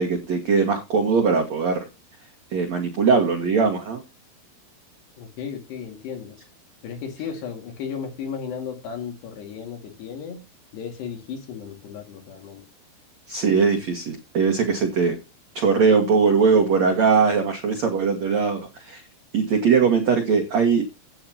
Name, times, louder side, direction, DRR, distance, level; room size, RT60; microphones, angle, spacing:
voice 1, 0.0-1.8 2.5-4.0 13.3-15.2 15.5-19.0 19.3-20.8, right 5 dB, 75° right, 2 dB, 1.6 m, -20 dB
voice 2, 5.2-6.4 6.8-10.4 10.7-12.6, left 7 dB, 60° left, 5 dB, 3.8 m, -34 dB
16.0 x 8.7 x 2.8 m, 0.26 s
omnidirectional pair, 5.9 m